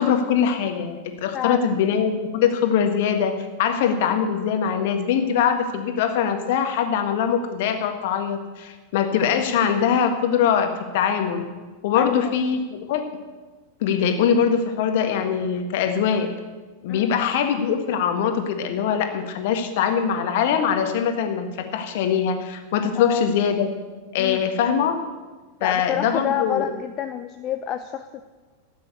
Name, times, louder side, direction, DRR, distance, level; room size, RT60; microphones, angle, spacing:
voice 1, 0.0-3.3 3.6-11.4 11.8-13.1 13.8-16.3 16.8-23.7 24.1-25.0 25.6-26.7, left 7 dB, 50° left, 6 dB, 1.8 m, -22 dB
voice 2, 1.3-1.7 11.9-12.3 16.9-17.1 23.0-23.3 24.2-24.7 25.6-28.2, left 10 dB, 35° left, 8 dB, 0.7 m, -28 dB
13.5 x 9.0 x 8.3 m, 1.3 s
figure-of-eight pair, 90°, 0 cm